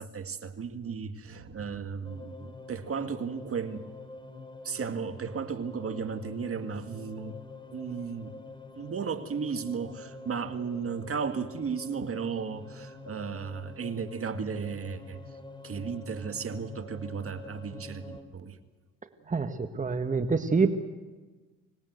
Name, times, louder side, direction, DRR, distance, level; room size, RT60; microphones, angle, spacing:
voice 1, 0.0-3.9 4.6-7.4 7.7-8.4 8.8-15.2 15.6-18.6 19.2-19.3, right 6 dB, 45° right, 9 dB, 1.8 m, -35 dB
sound 1, 2.0-18.2, left 3 dB, 15° left, 3.6 m, -46 dB
voice 2, 19.3-20.8, right 4 dB, 25° right, 8 dB, 1.5 m, -26 dB
25.5 x 19.5 x 8.0 m, 1.3 s
supercardioid pair, 65°, 32 cm